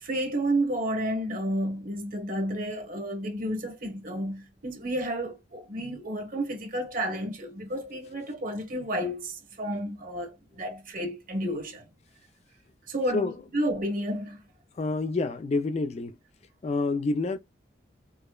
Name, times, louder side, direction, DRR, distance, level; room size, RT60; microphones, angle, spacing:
voice 1, 0.0-11.9 12.9-14.5, right 1 dB, 50° right, 1.1 m, -31 dB
voice 2, 14.8-16.2 16.6-17.4, left 3 dB, 35° left, 0.3 m, -28 dB
4.9 x 2.0 x 2.2 m
head